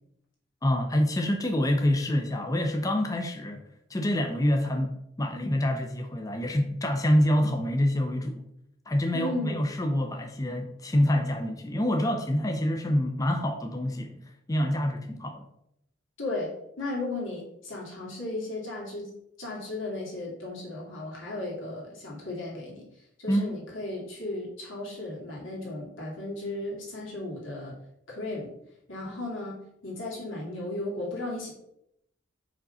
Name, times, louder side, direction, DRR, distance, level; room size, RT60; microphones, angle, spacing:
voice 1, 0.6-3.6 3.9-4.9 5.2-8.4 8.9-15.4 23.3-23.5, left 1 dB, 20° left, 4 dB, 0.5 m, -26 dB
voice 2, 9.1-9.6 16.2-19.1 19.4-22.9 23.2-27.7 28.1-28.5 28.9-31.5, left 2 dB, 90° left, -4 dB, 2.4 m, -35 dB
5.0 x 3.8 x 5.5 m, 0.78 s
head